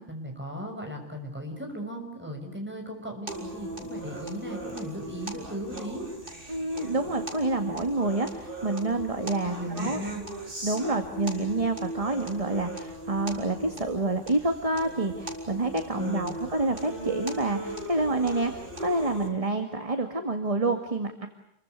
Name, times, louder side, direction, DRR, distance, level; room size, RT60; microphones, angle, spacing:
voice 1, 0.0-6.1 9.5-10.2 15.9-16.4, equal, 10° right, 2 dB, 6.7 m, -36 dB
sound 1, 3.3-19.3, right 1 dB, 45° right, 4.5 m, -38 dB
voice 2, 6.5-10.0 10.6-21.3, right 2 dB, 30° right, 5 dB, 2.1 m, -28 dB
29.5 x 23.5 x 8.2 m, 0.76 s
omnidirectional pair, 1.3 m